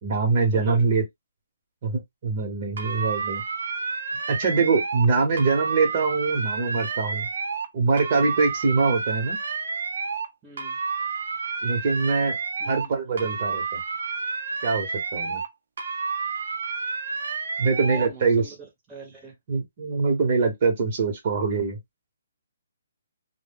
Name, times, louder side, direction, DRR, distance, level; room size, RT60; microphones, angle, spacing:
voice 1, 0.0-1.0 1.8-3.4 4.3-7.3 7.7-9.4 11.6-12.4 12.7-13.6 14.6-14.9 15.1-15.4 17.6-18.5 19.5-21.8, right 4 dB, 40° right, 0.9 m, -23 dB
voice 2, 0.5-0.8 8.2-8.4 10.4-10.8 12.6-12.9 17.8-18.6 18.9-19.3, right 4 dB, 10° right, 0.9 m, -42 dB
sound 1, 2.8-5.1 5.4-7.7 8.0-10.3 10.6-12.9 13.2-15.5 15.8-18.1, right 5 dB, 65° right, 0.6 m, -30 dB
2.2 x 2.1 x 3.5 m
hypercardioid pair, 165°, 0 cm